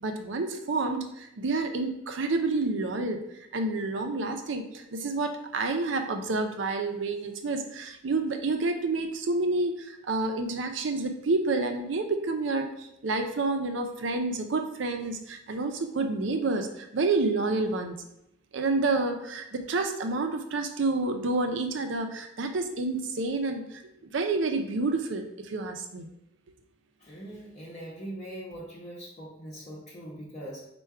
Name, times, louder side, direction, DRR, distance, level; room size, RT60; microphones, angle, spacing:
voice 1, 0.0-3.2 3.5-18.0 18.5-26.1, right 3 dB, 80° right, 5 dB, 0.5 m, -29 dB
voice 2, 27.0-30.7, right 1 dB, 40° left, -6 dB, 0.8 m, -41 dB
4.4 x 2.3 x 4.6 m, 0.81 s
head